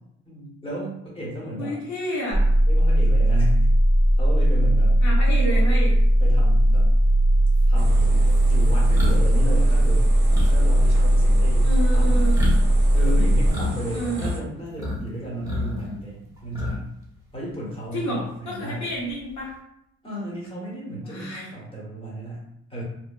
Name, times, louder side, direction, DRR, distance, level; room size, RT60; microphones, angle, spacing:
voice 1, 0.3-1.8 2.7-3.7 4.2-5.0 5.4-5.7 6.2-6.9 7.7-10.1 10.5-12.3 12.9-16.9 17.3-18.9 20.0-22.8, equal, 20° left, -5 dB, 1.1 m, -34 dB
voice 2, 1.6-2.5 5.0-5.9 11.6-12.4 13.9-14.3 17.9-19.5 21.0-21.4, equal, 70° left, -4 dB, 0.9 m, -30 dB
sound 1, 2.3-13.5, right 1 dB, 85° left, 1.0 m, -18 dB
sound 2, 7.0-7.1 7.5-13.7 14.0-15.0 15.3-17.0 17.3-17.5 18.9-19.5, left 2 dB, 10° right, 0.9 m, -31 dB
sound 3, 7.8-14.4, equal, 35° right, 0.6 m, -36 dB
2.7 x 2.1 x 2.2 m, 0.79 s
cardioid pair, 90°, 30 cm